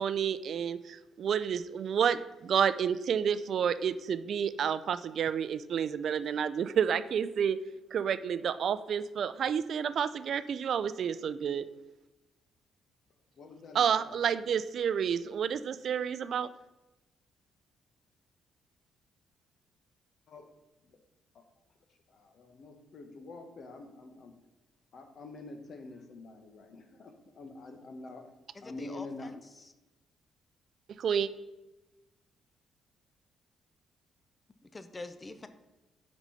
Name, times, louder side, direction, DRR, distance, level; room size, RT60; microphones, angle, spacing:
voice 1, 0.0-7.6 7.9-11.6 13.7-16.5 31.0-31.3, right 7 dB, 60° right, 14 dB, 0.4 m, -30 dB
voice 2, 13.4-14.1 20.3-20.5 20.8-21.0 21.3-21.4 22.1-24.3 24.9-28.2 28.6-29.4, left 3 dB, 60° left, 6 dB, 1.2 m, -46 dB
voice 3, 28.5-29.7 34.6-35.5, left 2 dB, 25° left, 11 dB, 0.6 m, -46 dB
6.0 x 5.3 x 5.6 m, 1.0 s
cardioid pair, 90°, 0 cm